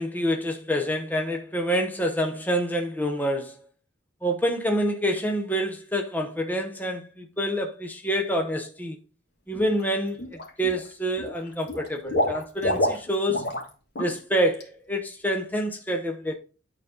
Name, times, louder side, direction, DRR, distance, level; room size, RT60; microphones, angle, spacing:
voice 1, 0.0-3.6 4.2-9.0 9.5-10.2 10.6-13.5 14.0-16.3, equal, 10° left, 0.8 m, -27 dB
Water / Liquid, 9.5-9.8 10.2-10.9 11.1-13.7 13.9-14.2 14.5-14.6, left 1 dB, 55° left, 2.1 m, -28 dB
9.5 x 4.1 x 3.7 m
head